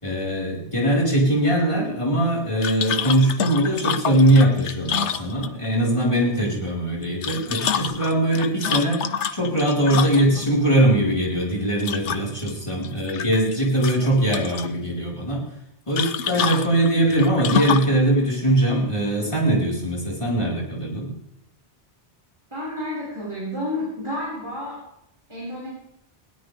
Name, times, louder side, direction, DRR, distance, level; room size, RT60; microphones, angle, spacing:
voice 1, 0.0-15.4 15.9-21.1, right 1 dB, 25° left, -4 dB, 4.7 m, -21 dB
sound 1, 2.6-5.8 7.0-10.5 11.8-12.5 12.8-13.5 13.8-14.7 16.0-18.0, left 8 dB, 90° left, 1.1 m, -27 dB
voice 2, 22.5-24.8 25.3-25.7, left 1 dB, 25° right, -9 dB, 5.4 m, -30 dB
20.5 x 17.5 x 3.5 m, 0.82 s
omnidirectional pair, 1.1 m